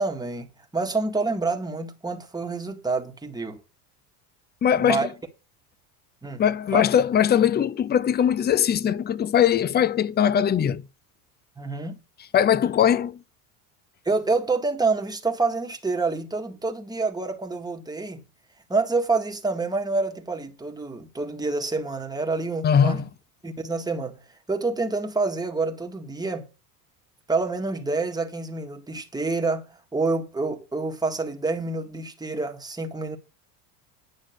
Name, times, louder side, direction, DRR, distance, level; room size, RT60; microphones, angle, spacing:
voice 1, 0.0-3.6 4.8-5.1 6.2-6.4 6.7-6.8 11.6-12.0 14.1-18.2 18.7-23.0 23.4-24.2 24.5-26.5 27.3-33.2, right 3 dB, 10° right, 1.8 m, -27 dB
voice 2, 4.6-5.1 6.4-10.8 12.3-13.2 22.6-23.1, left 9 dB, 20° left, 0.6 m, -21 dB
10.0 x 6.2 x 6.5 m
supercardioid pair, 105°, 45 cm